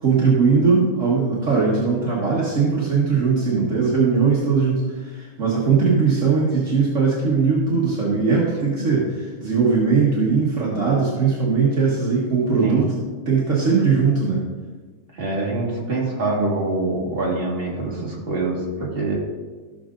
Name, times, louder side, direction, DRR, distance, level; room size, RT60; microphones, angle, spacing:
voice 1, 0.0-12.9 13.3-14.4, right 5 dB, 55° right, -5 dB, 1.7 m, -19 dB
voice 2, 15.1-19.2, right 2 dB, 40° right, -4 dB, 2.0 m, -25 dB
14.5 x 6.4 x 2.6 m, 1.4 s
omnidirectional pair, 1.6 m